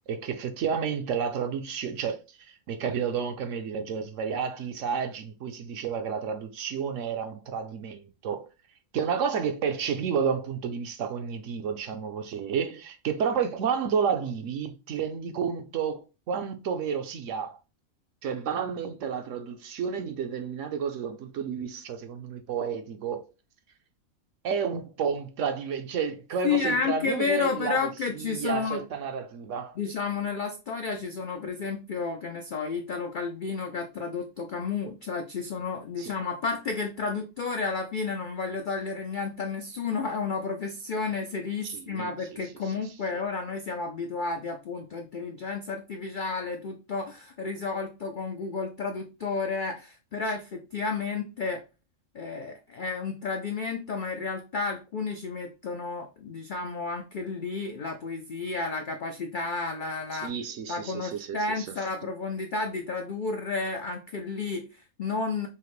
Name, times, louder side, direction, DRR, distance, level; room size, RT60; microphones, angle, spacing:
voice 1, 0.1-8.5 8.9-17.6 18.2-23.3 24.4-27.8 28.1-29.8 36.0-36.1 41.6-42.1 43.1-43.2 60.1-61.7, right 6 dB, 65° right, 0.9 m, -31 dB
voice 2, 26.4-28.8 29.8-51.6 52.1-60.3 60.7-65.5, left 4 dB, 75° left, 0.4 m, -31 dB
5.7 x 2.1 x 3.1 m
omnidirectional pair, 1.5 m